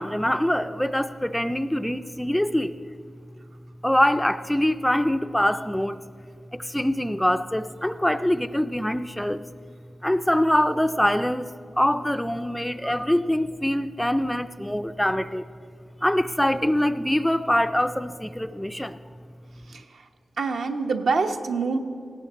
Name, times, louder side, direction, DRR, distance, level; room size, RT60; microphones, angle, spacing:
voice 1, 0.0-2.8 3.8-6.0 6.5-9.5 10.0-15.5 16.0-19.0, equal, 5° left, 10 dB, 0.3 m, -24 dB
voice 2, 19.7-20.1 20.4-21.8, right 4 dB, 70° right, 5 dB, 1.0 m, -26 dB
18.5 x 17.0 x 4.2 m, 2.3 s
wide cardioid pair, 180°, 0 cm